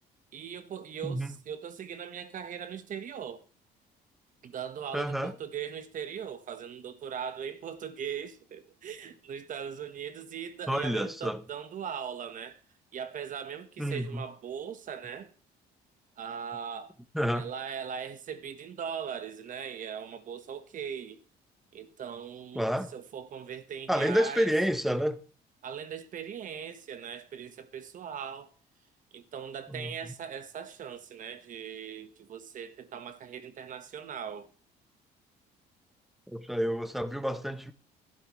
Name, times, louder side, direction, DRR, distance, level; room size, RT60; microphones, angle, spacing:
voice 1, 0.3-3.4 4.4-12.6 12.9-15.3 16.2-16.9 17.3-21.2 21.7-22.6 22.9-24.5 25.6-28.5 29.1-34.5, right 8 dB, 50° right, 1.3 m, -39 dB
voice 2, 1.0-1.3 4.9-5.3 10.7-11.4 13.8-14.2 17.1-17.5 22.5-22.9 23.9-25.2 29.7-29.9 36.3-37.7, equal, ahead, 0.8 m, -29 dB
12.0 x 12.0 x 3.2 m
cardioid pair, 110°, 17 cm